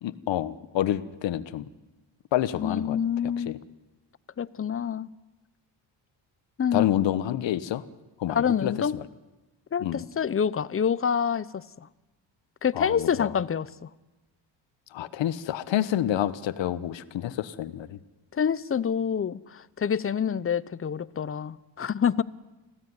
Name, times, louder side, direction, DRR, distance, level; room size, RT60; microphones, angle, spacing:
voice 1, 0.0-1.6 2.3-3.0 3.5-3.6 6.7-7.8 8.2-8.7 9.8-10.0 12.7-13.3 14.9-18.0, left 12 dB, 80° left, 1.2 m, -28 dB
voice 2, 2.5-3.5 4.4-5.1 6.6-6.9 8.3-9.0 9.7-11.9 12.6-13.9 18.3-22.2, left 7 dB, 30° left, 0.7 m, -27 dB
25.0 x 16.0 x 9.6 m
cardioid pair, 95°, 44 cm